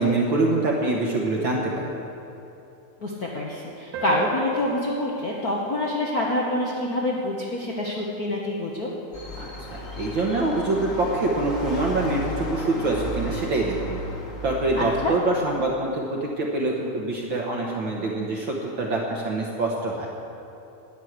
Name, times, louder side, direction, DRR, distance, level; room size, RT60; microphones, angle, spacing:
voice 1, 0.0-2.0 9.4-14.0 14.4-20.1, right 2 dB, 55° right, -2 dB, 1.4 m, -25 dB
voice 2, 3.0-8.9 14.8-15.1, left 1 dB, 80° left, -3 dB, 0.8 m, -26 dB
sound 1, 3.9-8.9, right 1 dB, 80° right, 2.8 m, -38 dB
sound 2, 9.1-15.2, right 1 dB, 35° left, 1.3 m, -34 dB
11.0 x 10.0 x 8.0 m, 2.8 s
omnidirectional pair, 3.4 m